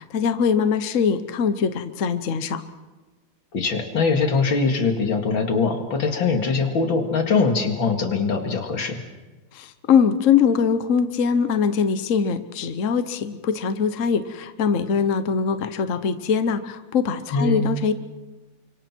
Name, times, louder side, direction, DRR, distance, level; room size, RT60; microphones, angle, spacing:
voice 1, 0.0-2.6 9.5-18.0, left 6 dB, 50° left, 10 dB, 1.3 m, -22 dB
voice 2, 3.5-9.0 17.3-17.6, left 4 dB, 85° left, 5 dB, 3.0 m, -22 dB
30.0 x 25.5 x 4.5 m, 1.2 s
omnidirectional pair, 2.1 m